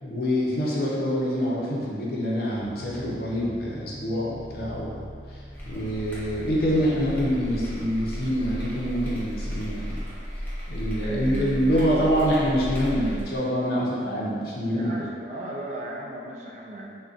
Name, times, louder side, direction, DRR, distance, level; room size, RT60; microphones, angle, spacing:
voice 1, 0.0-5.4 5.6-10.0 10.7-14.9, equal, 55° left, -5 dB, 0.5 m, -26 dB
sound 1, 2.5-9.7, equal, 75° right, 0.7 m, -44 dB
sound 2, 5.5-13.4, equal, 10° left, 0.5 m, -34 dB
voice 2, 11.0-12.3 14.5-17.0, right 1 dB, 40° right, -2 dB, 0.3 m, -36 dB
3.7 x 2.1 x 2.4 m, 2.3 s
head